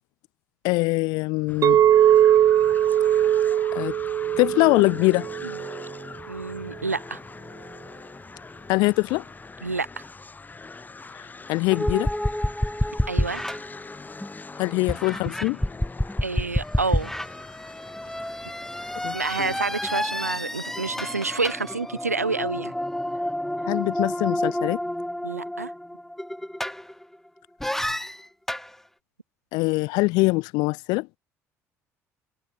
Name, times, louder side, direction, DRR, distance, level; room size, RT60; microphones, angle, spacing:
voice 1, 0.6-1.8 3.7-3.9 4.4-5.3 8.7-9.2 11.5-12.1 14.6-15.6 19.0-19.5 23.7-24.8 29.5-31.1, left 24 dB, 60° left, 0.6 m, -23 dB
sound 1, 1.5-20.1, left 3 dB, 20° left, 4.1 m, -43 dB
Chink clink, 1.6-5.9, right 11 dB, 45° right, 0.5 m, -20 dB
voice 2, 6.3-7.2 9.6-10.0 13.1-13.4 16.2-17.1 19.1-22.7 25.2-25.7, right 3 dB, 85° right, 2.8 m, -28 dB
sound 2, 11.7-14.4 14.9-27.2 27.6-28.7, left 1 dB, 5° left, 4.1 m, -29 dB
open air
figure-of-eight pair, 55°, 8 cm